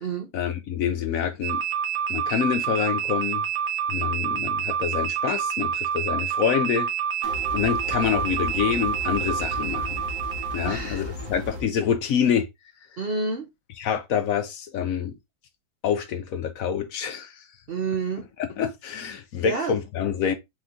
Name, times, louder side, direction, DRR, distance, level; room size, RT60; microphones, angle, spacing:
voice 1, 0.3-1.6 2.1-3.4 3.9-6.9 7.5-10.0 10.5-12.5 13.8-15.2 15.8-17.5 18.4-20.4, left 8 dB, 70° left, 1.0 m, -26 dB
sound 1, 1.4-10.7, right 8 dB, 90° right, 1.4 m, -27 dB
sound 2, 7.2-11.6, left 1 dB, 70° right, 1.6 m, -36 dB
voice 2, 10.6-11.3 13.0-13.5 17.7-18.3 19.4-19.8, right 4 dB, 50° right, 0.7 m, -29 dB
4.4 x 2.9 x 3.6 m
omnidirectional pair, 1.7 m